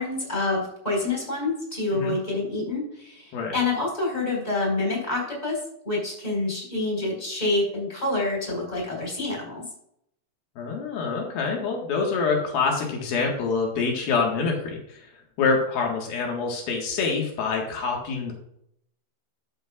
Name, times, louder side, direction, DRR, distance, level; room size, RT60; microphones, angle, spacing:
voice 1, 0.0-5.6 5.8-9.6, left 2 dB, 10° left, -2 dB, 4.5 m, -27 dB
voice 2, 10.6-15.1 15.4-18.3, left 4 dB, 85° left, 0 dB, 3.5 m, -26 dB
11.5 x 10.5 x 2.5 m, 0.72 s
omnidirectional pair, 4.1 m